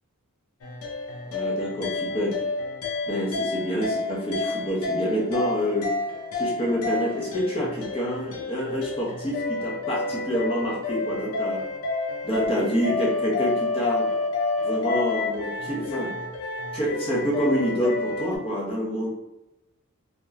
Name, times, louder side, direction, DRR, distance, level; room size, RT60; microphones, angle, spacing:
sound 1, 0.6-18.4, left 3 dB, 70° left, 0.4 m, -29 dB
voice 1, 1.3-2.3 3.1-5.9 6.3-11.6 12.2-14.1 14.6-16.1 16.7-19.1, equal, 25° left, -5 dB, 0.6 m, -27 dB
2.9 x 2.1 x 2.3 m, 0.96 s
head